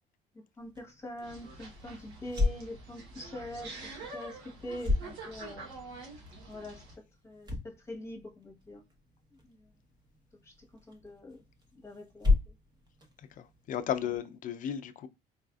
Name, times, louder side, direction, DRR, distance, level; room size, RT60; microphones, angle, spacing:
voice 1, 0.6-5.7 6.5-6.8 7.2-8.8 9.4-9.7 10.4-10.5 10.9-11.4 11.7-12.5, left 1 dB, 15° left, 1.1 m, -44 dB
sound 1, 0.6-14.2, left 3 dB, 25° right, 0.9 m, -36 dB
sound 2, 1.2-7.0, right 2 dB, 85° right, 1.1 m, -46 dB
voice 2, 13.2-15.1, left 9 dB, 50° left, 0.4 m, -35 dB
4.1 x 2.4 x 2.3 m
cardioid pair, 110°, 17 cm